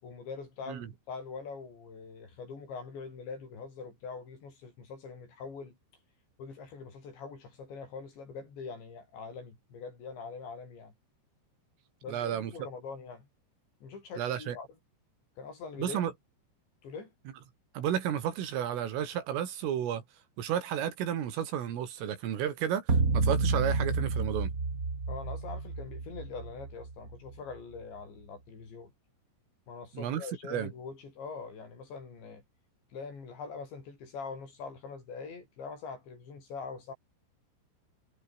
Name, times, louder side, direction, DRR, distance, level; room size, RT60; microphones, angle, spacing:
voice 1, 0.0-5.8 6.4-10.9 12.0-13.3 13.8-14.7 15.4-16.1 16.8-17.1 25.1-28.9 29.7-32.4 32.9-36.9, left 5 dB, 65° left, 9.4 m, -43 dB
voice 2, 12.1-12.5 14.2-14.6 15.8-16.1 17.8-20.0 20.4-22.9 23.1-24.5 29.9-30.7, right 10 dB, 90° right, 5.6 m, -32 dB
sound 1, 22.9-27.3, right 3 dB, 20° right, 2.6 m, -30 dB
omnidirectional pair, 5.6 m